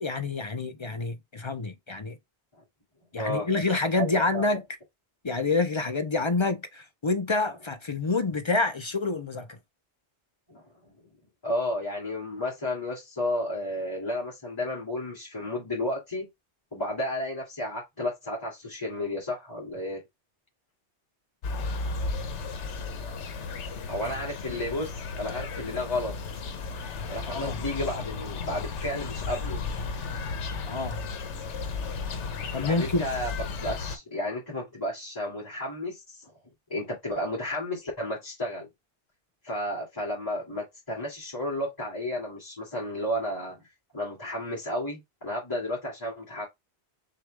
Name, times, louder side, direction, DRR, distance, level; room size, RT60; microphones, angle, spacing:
voice 1, 0.0-2.2 3.1-4.6 5.2-9.6 24.0-24.1 24.5-24.6 27.3-27.6 30.6-31.0 32.5-33.0, left 3 dB, 40° left, 0.4 m, -28 dB
voice 2, 3.2-3.5 4.0-4.5 10.5-10.9 11.4-16.3 16.7-20.0 23.9-26.2 27.1-29.6 32.6-36.3 36.7-38.7 39.4-43.6 43.9-46.4, left 1 dB, 20° left, 2.1 m, -32 dB
sound 1, 21.4-34.0, left 4 dB, 85° left, 1.1 m, -34 dB
6.5 x 2.4 x 3.2 m
omnidirectional pair, 1.2 m